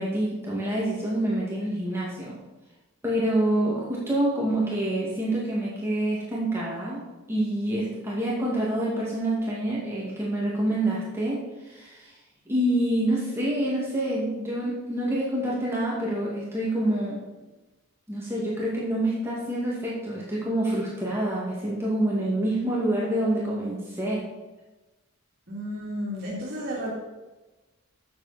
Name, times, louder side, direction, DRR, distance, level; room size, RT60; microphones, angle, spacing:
voice 1, 0.0-2.4 3.0-7.0 7.3-12.1 12.5-17.2 18.1-24.3, right 1 dB, 10° right, -6 dB, 2.3 m, -27 dB
voice 2, 25.5-27.0, equal, 55° right, -7 dB, 2.9 m, -32 dB
12.0 x 7.5 x 4.3 m, 1.1 s
head